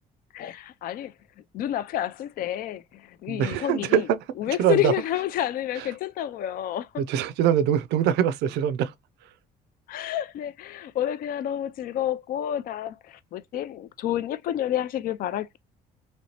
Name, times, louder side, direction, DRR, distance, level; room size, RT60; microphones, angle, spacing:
voice 1, 0.3-1.1 1.5-4.1 4.4-7.0 9.9-15.6, left 12 dB, 60° left, 0.4 m, -29 dB
voice 2, 3.3-4.2 4.6-4.9 5.8-5.9 7.0-8.9, right 9 dB, 80° right, 0.4 m, -23 dB
3.1 x 2.9 x 2.8 m
cardioid pair, 110°, 17 cm